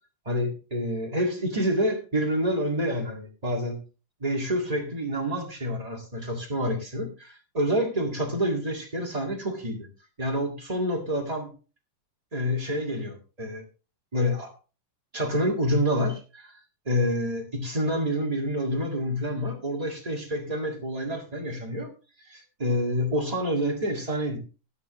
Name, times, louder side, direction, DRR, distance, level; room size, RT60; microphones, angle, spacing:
voice 1, 0.2-3.8 4.2-9.9 10.2-11.5 12.3-13.6 14.1-14.5 15.1-16.6 16.8-21.9 22.2-24.4, equal, 30° right, -1 dB, 0.6 m, -28 dB
15.0 x 9.9 x 3.1 m, 0.34 s
omnidirectional pair, 4.3 m